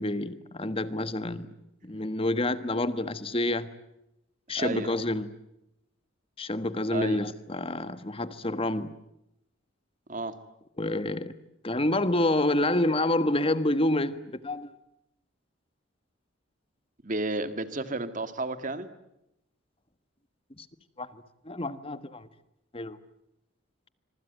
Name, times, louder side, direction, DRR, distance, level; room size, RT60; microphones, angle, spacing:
voice 1, 0.0-1.5 1.8-3.7 4.5-5.3 6.4-8.9 10.8-11.3 11.6-14.7 20.6-20.7 21.0-22.3 22.7-23.0, left 1 dB, 30° left, 1.4 m, -28 dB
voice 2, 4.6-4.9 6.9-7.2 10.1-10.3 17.0-18.9, right 2 dB, 40° right, 1.9 m, -32 dB
26.0 x 24.0 x 9.2 m
head